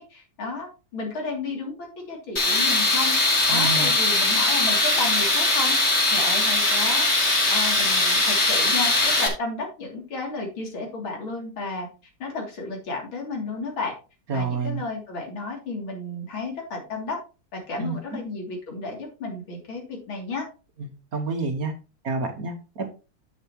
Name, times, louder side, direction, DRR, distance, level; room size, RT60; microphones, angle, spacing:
voice 1, 0.0-5.8 6.1-11.9 12.2-13.9 14.3-17.2 17.5-20.5, left 3 dB, 85° left, 0 dB, 3.8 m, -32 dB
Tools, 2.4-9.3, left 2 dB, 35° left, 2.6 m, -21 dB
voice 2, 3.5-3.9 14.3-14.8 17.8-17.9 20.8-21.7 22.0-22.9, right 4 dB, 50° right, 5 dB, 1.7 m, -28 dB
10.5 x 7.3 x 3.0 m, 0.31 s
omnidirectional pair, 2.2 m